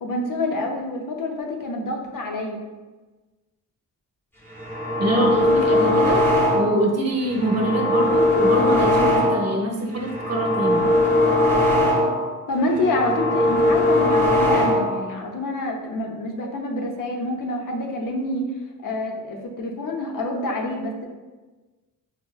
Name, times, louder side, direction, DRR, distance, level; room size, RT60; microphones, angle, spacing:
voice 1, 0.0-2.6 12.5-18.4 18.8-21.1, left 1 dB, 65° left, 1 dB, 0.6 m, -27 dB
sound 1, 4.5-6.9 7.3-9.6 10.0-12.3 12.7-15.1, left 1 dB, 5° left, 0.6 m, -20 dB
voice 2, 5.0-6.2 6.5-10.8, right 1 dB, 45° right, 1 dB, 0.6 m, -24 dB
4.4 x 2.0 x 2.3 m, 1.2 s
wide cardioid pair, 100°, 36 cm